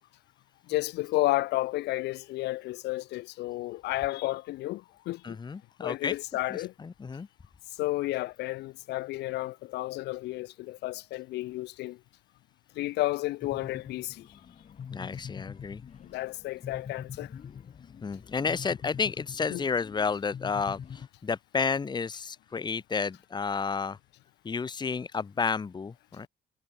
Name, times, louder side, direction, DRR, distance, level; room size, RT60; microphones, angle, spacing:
voice 1, 0.7-5.4 5.8-6.7 7.8-12.0 12.7-14.3 16.0-17.3 19.5-19.6, left 18 dB, 85° left, 6.7 m, -32 dB
voice 2, 5.2-6.2 6.5-7.3 14.9-15.8 18.0-24.0 24.4-26.3, left 5 dB, 25° left, 1.6 m, -31 dB
sound 1, 13.4-21.1, left 7 dB, 40° left, 5.5 m, -44 dB
cardioid pair, 110°, 17 cm